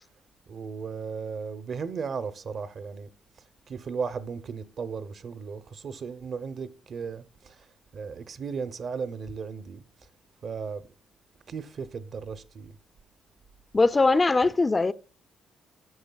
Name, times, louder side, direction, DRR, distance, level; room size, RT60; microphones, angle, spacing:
voice 1, 0.5-3.1 3.7-7.6 7.9-9.8 10.4-10.9 11.5-12.7, right 5 dB, 55° right, 0.6 m, -35 dB
voice 2, 13.7-14.9, left 3 dB, 25° left, 0.3 m, -21 dB
12.0 x 7.4 x 2.2 m
cardioid pair, 90°, 0 cm